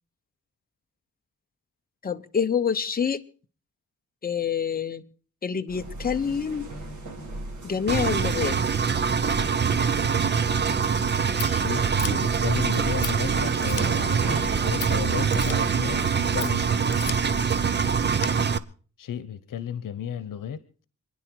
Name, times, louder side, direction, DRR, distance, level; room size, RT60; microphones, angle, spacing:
voice 1, 2.0-3.2 4.2-5.0 5.4-6.7 7.6-8.6, left 7 dB, 30° left, 6 dB, 0.9 m, -27 dB
sound 1, 5.7-18.3, right 2 dB, 65° right, 3.9 m, -37 dB
Engine, 7.9-18.6, right 6 dB, 35° right, 0.7 m, -24 dB
Scissors, 10.8-18.3, left 8 dB, 70° left, 1.2 m, -41 dB
voice 2, 11.3-16.7 19.0-20.8, left 9 dB, 90° left, 15 dB, 1.0 m, -34 dB
27.0 x 10.0 x 4.6 m, 0.40 s
wide cardioid pair, 170°, 32 cm